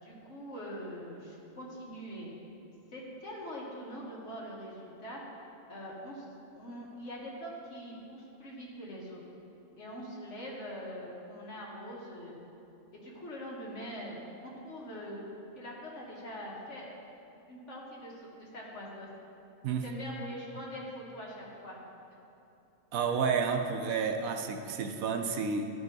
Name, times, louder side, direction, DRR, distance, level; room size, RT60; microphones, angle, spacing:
voice 1, 0.0-2.3 2.9-5.2 5.7-6.3 6.5-9.2 9.8-12.3 12.9-15.2 15.5-16.9 17.5-19.1 19.8-21.8, equal, 55° left, -4 dB, 1.8 m, -43 dB
voice 2, 22.9-25.7, right 5 dB, 75° right, 5 dB, 1.0 m, -30 dB
13.0 x 5.4 x 3.9 m, 2.9 s
omnidirectional pair, 1.5 m